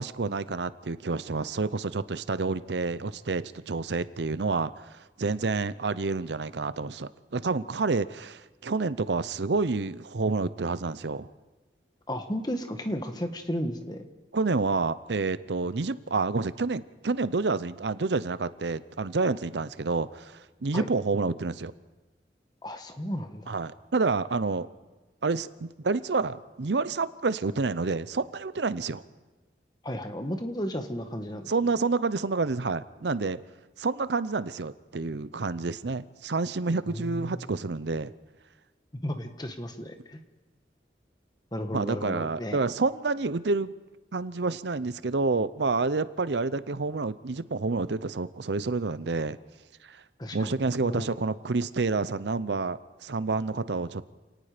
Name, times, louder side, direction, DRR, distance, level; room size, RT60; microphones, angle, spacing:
voice 1, 0.0-11.3 14.3-21.7 23.5-24.7 25.2-29.0 31.5-33.4 33.8-38.1 41.7-43.7 44.1-49.4 49.8-50.0 50.3-54.1, right 3 dB, 75° right, 15 dB, 0.7 m, -29 dB
voice 2, 12.1-14.1 20.7-20.9 22.6-23.6 29.8-31.7 36.8-37.5 39.0-40.2 41.5-42.6 50.2-51.2, equal, 25° left, 6 dB, 1.5 m, -34 dB
28.5 x 18.5 x 5.1 m, 1.2 s
head